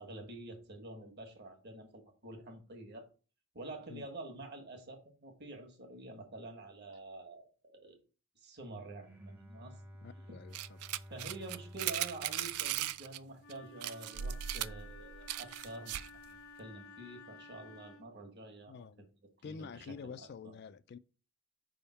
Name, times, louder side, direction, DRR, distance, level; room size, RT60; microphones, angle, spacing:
voice 1, 0.0-3.1 3.5-8.0 8.3-9.8 10.3-10.4 11.1-16.0 16.3-19.1 19.4-20.5, right 2 dB, 50° right, 1.4 m, -48 dB
Bowed string instrument, 9.0-14.3, equal, 5° right, 0.7 m, -54 dB
voice 2, 10.0-10.8 18.7-19.1 19.4-21.0, left 6 dB, 50° left, 0.3 m, -48 dB
sound 1, 10.5-13.2 13.5-13.6 13.8-16.2, right 12 dB, 85° right, 0.4 m, -38 dB
Wind instrument woodwind instrument, 13.4-18.2, left 3 dB, 70° left, 0.8 m, -54 dB
5.2 x 3.6 x 5.6 m
head